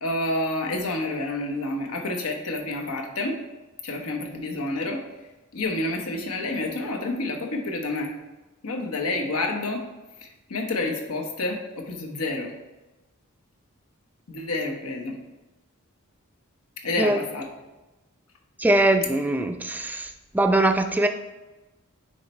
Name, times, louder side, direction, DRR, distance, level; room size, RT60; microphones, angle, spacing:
voice 1, 0.0-3.4 3.8-5.0 5.5-8.1 8.6-9.9 10.2-12.5 14.3-15.2 16.8-17.5, left 2 dB, 85° left, 3 dB, 1.1 m, -29 dB
voice 2, 18.6-21.1, right 1 dB, 10° right, 6 dB, 0.4 m, -22 dB
9.6 x 3.2 x 4.3 m, 1.1 s
head